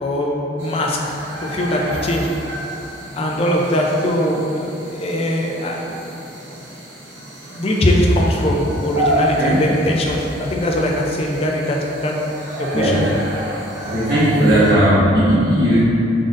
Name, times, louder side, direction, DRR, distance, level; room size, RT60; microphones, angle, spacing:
voice 1, 0.0-1.1 1.4-2.3 3.1-6.0 7.5-12.1 12.6-13.0, left 1 dB, 35° left, -1 dB, 0.4 m, -20 dB
sound 1, 0.6-14.7, right 1 dB, 75° right, 0.8 m, -30 dB
voice 2, 13.8-15.8, equal, 55° right, -13 dB, 1.4 m, -16 dB
3.9 x 3.7 x 2.5 m, 2.9 s
head